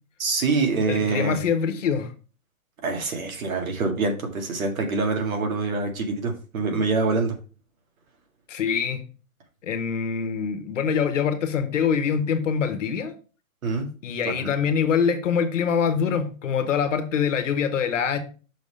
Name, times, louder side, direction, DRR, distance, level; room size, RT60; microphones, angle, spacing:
voice 1, 0.2-1.4 2.8-7.4 13.6-13.9 14.2-14.5, right 3 dB, 75° right, 4 dB, 2.0 m, -25 dB
voice 2, 0.9-2.1 8.5-9.0 9.6-13.1 14.0-18.2, left 7 dB, 60° left, 8 dB, 1.3 m, -24 dB
6.1 x 3.6 x 5.4 m, 0.36 s
hypercardioid pair, 180°, 42 cm